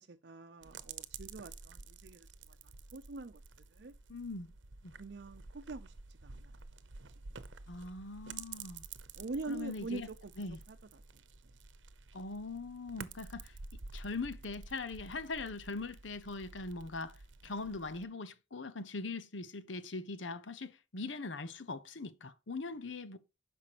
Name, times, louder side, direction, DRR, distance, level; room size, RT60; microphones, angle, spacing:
voice 1, 0.0-2.6 2.9-3.4 3.7-3.9 5.0-5.9 6.2-6.5 9.1-10.3 10.7-11.0 17.4-17.7, right 3 dB, 60° right, 0.6 m, -44 dB
sound 1, 0.6-18.0, right 4 dB, 85° right, 0.9 m, -51 dB
voice 2, 4.1-4.5 4.8-4.9 7.7-8.8 9.5-10.1 10.4-10.6 12.1-13.6 13.9-23.2, left 3 dB, 80° left, 0.9 m, -41 dB
10.0 x 6.1 x 3.0 m
head